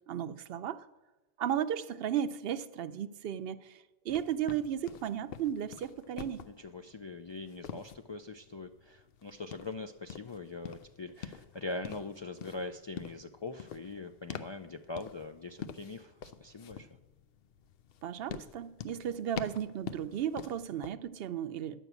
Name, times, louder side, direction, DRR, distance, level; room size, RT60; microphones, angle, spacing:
voice 1, 0.1-0.9 1.4-6.5 18.0-21.8, right 9 dB, 70° right, 13 dB, 0.8 m, -35 dB
sound 1, 4.1-20.9, left 7 dB, 70° left, 0.8 m, -47 dB
voice 2, 6.4-16.9, left 3 dB, 50° left, 7 dB, 0.3 m, -42 dB
11.0 x 5.8 x 8.1 m, 1.1 s
omnidirectional pair, 1.0 m